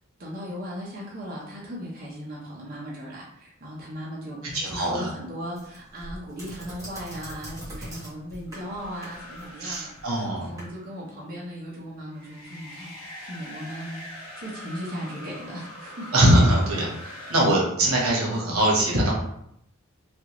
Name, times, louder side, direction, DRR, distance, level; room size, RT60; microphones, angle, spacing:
voice 1, 0.2-16.1 17.0-17.8, equal, 45° right, -5 dB, 0.7 m, -37 dB
voice 2, 4.6-5.1 9.6-10.5 16.1-16.9 17.3-19.1, right 1 dB, 85° right, -3 dB, 1.0 m, -21 dB
sound 1, 5.5-10.7, equal, 15° right, 1.2 m, -42 dB
sound 2, 8.5-11.0 12.1-17.4, left 1 dB, 25° left, 0.9 m, -43 dB
3.3 x 2.4 x 2.9 m, 0.74 s
head